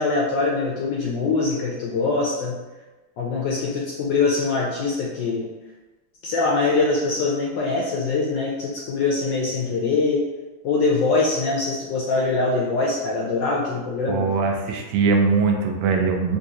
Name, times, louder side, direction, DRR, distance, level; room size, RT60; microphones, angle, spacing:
voice 1, 0.0-2.6 3.2-5.5 6.2-10.2 10.6-14.3, left 3 dB, 75° left, -4 dB, 1.0 m, -23 dB
voice 2, 14.1-16.4, right 4 dB, 90° right, 3 dB, 1.5 m, -21 dB
3.8 x 2.6 x 2.8 m, 1.2 s
omnidirectional pair, 2.4 m